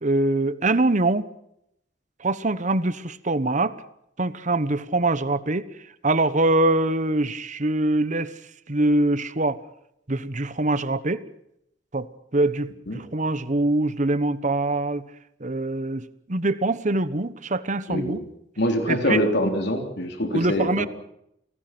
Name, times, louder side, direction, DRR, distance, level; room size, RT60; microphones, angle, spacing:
voice 1, 0.0-1.3 2.2-3.8 4.2-5.6 6.0-8.3 8.7-9.6 10.1-11.2 11.9-12.1 12.3-15.1 15.4-18.2 18.9-19.2 20.3-20.9, right 2 dB, 45° right, 14 dB, 1.2 m, -23 dB
voice 2, 17.9-18.2 18.6-20.9, equal, 65° left, 4 dB, 3.7 m, -24 dB
29.0 x 18.5 x 6.1 m, 0.77 s
head